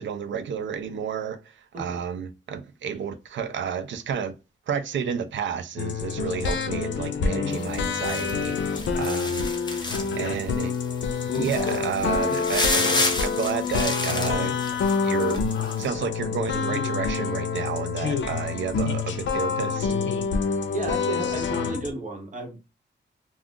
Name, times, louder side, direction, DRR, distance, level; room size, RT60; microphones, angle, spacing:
voice 1, 0.0-1.4 1.8-4.4 4.7-9.8 10.2-10.7 11.3-14.5 15.0-15.5 15.8-19.9, right 7 dB, 80° right, 0.5 m, -31 dB
sound 1, 5.8-21.9, left 5 dB, 75° left, 0.5 m, -27 dB
sound 2, 7.5-10.2 10.6-10.8 11.2-15.4 15.7-15.8, left 2 dB, 20° left, 0.7 m, -30 dB
voice 2, 20.7-22.6, right 2 dB, 40° right, 0.9 m, -33 dB
2.4 x 2.4 x 3.5 m
wide cardioid pair, 150°, 19 cm